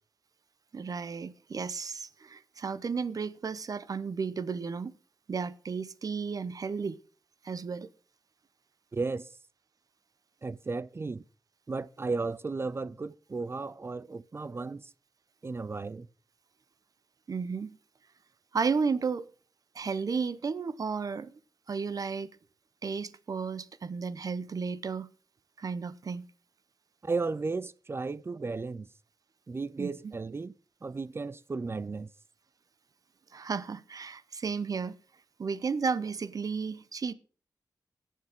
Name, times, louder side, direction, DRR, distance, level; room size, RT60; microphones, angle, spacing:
voice 1, 0.7-4.9 5.3-7.0 7.4-7.9 17.3-17.8 18.5-19.3 19.7-21.4 21.7-22.3 22.8-25.1 25.6-26.3 29.8-30.1 33.3-34.9 35.4-37.1, right 5 dB, 55° right, 0.8 m, -33 dB
voice 2, 8.9-9.3 10.4-11.2 11.7-14.8 15.4-16.1 27.0-28.9 29.5-30.5 30.8-32.1, right 3 dB, 35° right, 0.4 m, -34 dB
17.5 x 7.4 x 3.6 m
cardioid pair, 80°, 7 cm